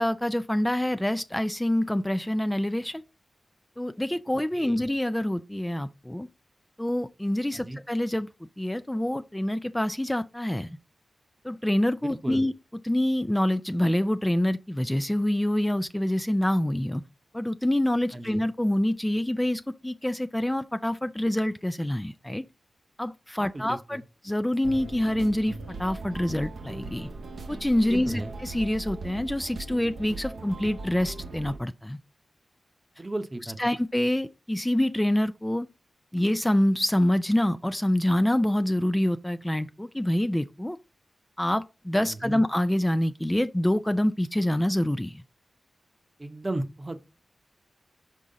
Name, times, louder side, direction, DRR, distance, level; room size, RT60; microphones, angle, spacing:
voice 1, 0.0-3.0 3.8-6.3 6.8-8.3 8.6-10.8 11.4-12.5 12.8-17.0 17.3-22.4 23.0-27.1 27.5-32.0 33.6-35.7 36.1-40.8 41.4-45.2, left 1 dB, 10° left, 0.4 m, -26 dB
voice 2, 4.5-4.8 7.5-7.8 12.0-12.4 18.1-18.4 23.4-24.0 27.9-28.3 33.0-33.7 42.1-42.4 46.2-47.0, right 1 dB, 30° right, 0.8 m, -35 dB
sound 1, 24.6-31.6, right 3 dB, 80° right, 0.7 m, -39 dB
5.5 x 4.9 x 3.8 m
cardioid pair, 45°, 0 cm